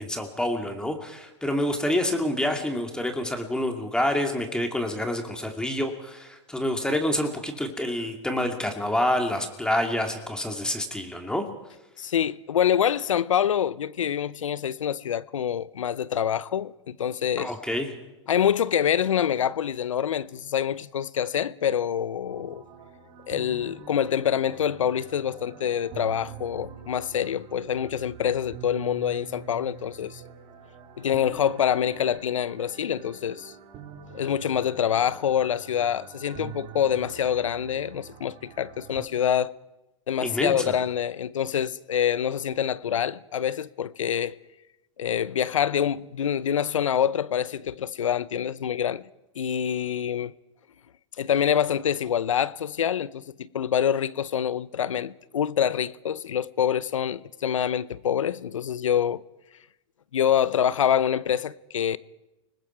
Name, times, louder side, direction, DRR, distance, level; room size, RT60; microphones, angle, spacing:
voice 1, 0.0-11.4 17.4-17.9 40.2-40.7, left 1 dB, 5° left, 2.7 m, -27 dB
voice 2, 12.0-17.5 18.3-22.6 23.3-30.2 31.0-33.5 34.1-39.5 40.1-44.4 45.0-49.0 49.4-50.3 51.2-59.2 60.1-62.0, left 9 dB, 90° left, 0.6 m, -26 dB
sound 1, 22.2-39.0, right 8 dB, 45° right, 3.9 m, -45 dB
29.5 x 20.0 x 4.6 m
hypercardioid pair, 110°, 16 cm